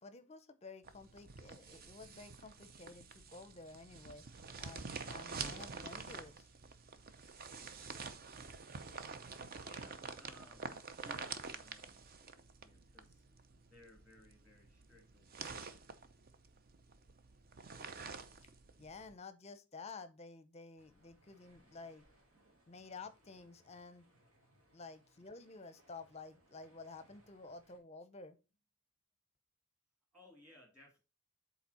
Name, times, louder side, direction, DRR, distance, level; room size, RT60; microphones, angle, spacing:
voice 1, 0.0-4.2 4.6-6.5 18.8-22.1 22.7-24.1 24.7-28.4, left 4 dB, 30° left, 0.6 m, -52 dB
sound 1, 0.8-19.1, right 5 dB, 45° right, 0.6 m, -48 dB
voice 2, 9.6-12.0 12.3-13.2 13.7-15.7 24.7-24.8 30.1-31.0, left 1 dB, 5° right, 2.5 m, -62 dB
sound 2, 20.8-27.8, right 1 dB, 80° right, 2.6 m, -70 dB
7.1 x 4.1 x 4.1 m
head